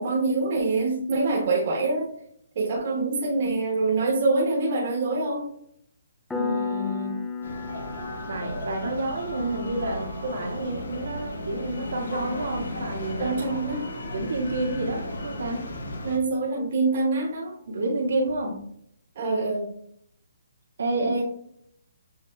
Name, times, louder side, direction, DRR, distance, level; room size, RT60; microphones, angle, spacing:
voice 1, 0.0-2.1 2.5-5.4 13.2-13.8 16.0-17.5 19.1-19.7 21.0-21.2, right 3 dB, 40° right, -5 dB, 1.0 m, -25 dB
Piano, 6.3-16.7, left 4 dB, 5° left, 0.3 m, -38 dB
voice 2, 6.3-7.2 8.3-13.3 14.1-15.9 17.7-18.6 20.8-21.2, right 2 dB, 75° right, -2 dB, 1.6 m, -29 dB
sound 1, 7.4-16.2, left 1 dB, 75° left, 1.1 m, -35 dB
7.3 x 3.0 x 2.3 m, 0.70 s
hypercardioid pair, 170°, 0 cm